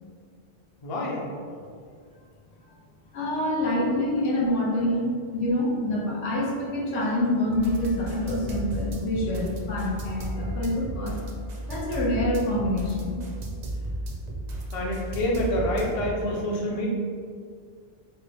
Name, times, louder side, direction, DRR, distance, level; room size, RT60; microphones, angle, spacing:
voice 1, 0.8-1.2 14.7-16.9, equal, 45° left, -2 dB, 0.5 m, -27 dB
voice 2, 3.1-11.2 11.7-13.2, left 1 dB, 85° left, -2 dB, 1.1 m, -26 dB
sound 1, 7.5-16.1, right 1 dB, 60° right, 0.4 m, -34 dB
4.4 x 2.1 x 3.3 m, 2.1 s
omnidirectional pair, 1.2 m